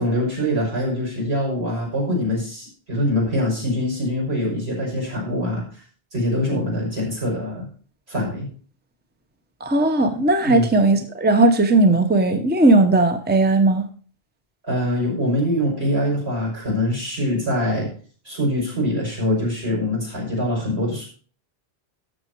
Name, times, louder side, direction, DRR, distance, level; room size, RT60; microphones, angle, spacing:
voice 1, 0.0-5.8 6.1-7.7 8.1-8.5 10.5-10.7 14.7-17.9 18.2-21.1, left 1 dB, 75° right, -3 dB, 6.2 m, -24 dB
voice 2, 9.6-13.8, right 2 dB, 10° right, 7 dB, 0.9 m, -17 dB
13.0 x 6.9 x 4.6 m, 0.41 s
omnidirectional pair, 1.1 m